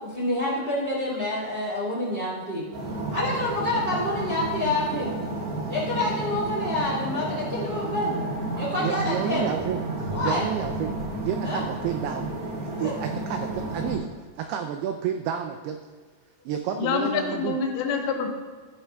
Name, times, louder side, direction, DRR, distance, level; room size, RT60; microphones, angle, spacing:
voice 1, 0.0-2.6 3.1-5.1 5.7-8.1 8.5-9.5 10.1-10.4 11.4-11.6 12.7-12.9, left 1 dB, 20° right, -8 dB, 1.9 m, -27 dB
sound 1, 2.7-14.0, right 2 dB, 65° right, 1.5 m, -31 dB
voice 2, 8.8-10.9 11.2-12.3 12.6-14.1 14.4-15.8 16.5-17.6, right 9 dB, 90° right, 6 dB, 2.2 m, -30 dB
voice 3, 16.8-18.3, left 5 dB, 80° left, 2 dB, 3.3 m, -26 dB
12.5 x 9.7 x 2.3 m, 1.5 s
omnidirectional pair, 5.1 m